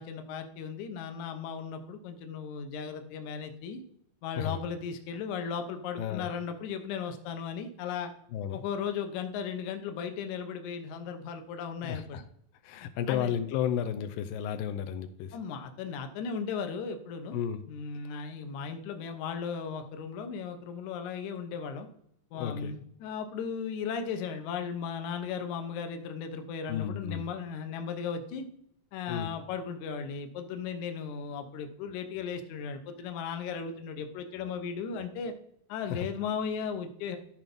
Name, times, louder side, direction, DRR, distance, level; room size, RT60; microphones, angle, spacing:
voice 1, 0.0-3.8 4.2-8.1 8.5-12.2 13.1-13.3 15.3-17.4 17.7-21.9 22.3-28.5 28.9-35.3 35.7-37.2, left 6 dB, 70° left, 7 dB, 2.2 m, -36 dB
voice 2, 6.0-6.3 8.3-8.6 11.8-12.2 12.6-15.4 17.3-17.6 22.3-22.8 26.7-27.3 29.1-29.3 35.9-36.1, left 9 dB, 85° left, 8 dB, 2.4 m, -33 dB
13.5 x 4.6 x 5.2 m, 0.72 s
omnidirectional pair, 3.9 m